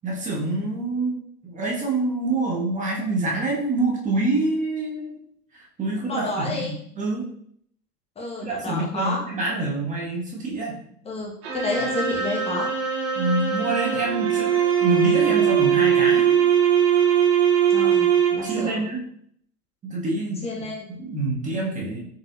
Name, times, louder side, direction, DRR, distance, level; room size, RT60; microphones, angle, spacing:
voice 1, 0.0-1.2 1.4-5.2 5.5-7.3 8.4-10.8 13.1-14.5 14.8-16.5 18.4-19.0 19.8-20.4 20.9-22.0, right 2 dB, 15° right, -2 dB, 1.0 m, -26 dB
voice 2, 6.1-6.7 8.2-9.2 11.1-12.7 17.7-18.8 20.4-20.8, left 2 dB, 15° left, -2 dB, 0.7 m, -30 dB
sound 1, 11.4-18.7, right 8 dB, 45° right, 1.1 m, -21 dB
4.1 x 3.6 x 2.6 m, 0.66 s
figure-of-eight pair, 95°, 48 cm